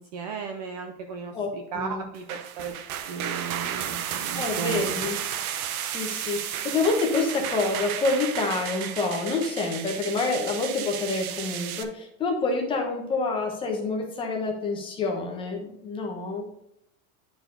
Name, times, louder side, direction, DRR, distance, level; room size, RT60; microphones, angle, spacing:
voice 1, 0.0-2.7 3.1-5.0, right 6 dB, 30° right, 4 dB, 0.4 m, -35 dB
voice 2, 1.3-2.0 4.3-5.2 5.8-16.5, left 3 dB, 10° left, 1 dB, 0.9 m, -27 dB
sound 1, 2.1-11.8, right 9 dB, 90° right, 1.0 m, -33 dB
9.9 x 4.6 x 3.8 m, 0.81 s
supercardioid pair, 180°, 42 cm